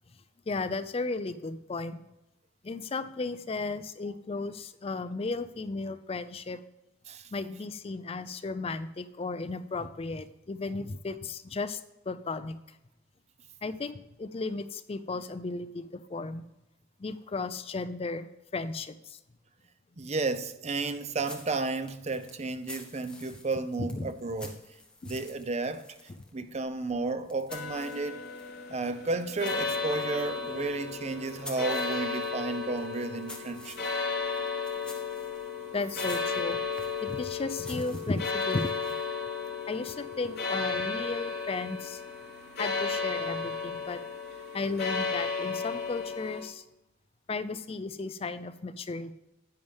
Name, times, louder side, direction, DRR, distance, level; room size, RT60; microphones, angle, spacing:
voice 1, 0.5-2.0 2.6-6.6 7.3-11.8 12.1-12.8 13.6-16.5 17.0-19.2 23.8-24.1 25.0-25.2 35.7-36.6 37.0-38.9 39.7-42.0 42.6-44.0 44.5-46.6 47.3-49.1, left 3 dB, 30° left, 0.4 m, -35 dB
voice 2, 20.0-24.6 25.0-25.9 26.3-28.2 28.7-33.9, right 3 dB, 35° right, 0.6 m, -32 dB
sound 1, 21.2-28.6 28.9-39.2, left 2 dB, 5° left, 1.3 m, -50 dB
sound 2, 27.5-46.4, left 4 dB, 55° left, 3.0 m, -34 dB
10.5 x 9.4 x 3.5 m
head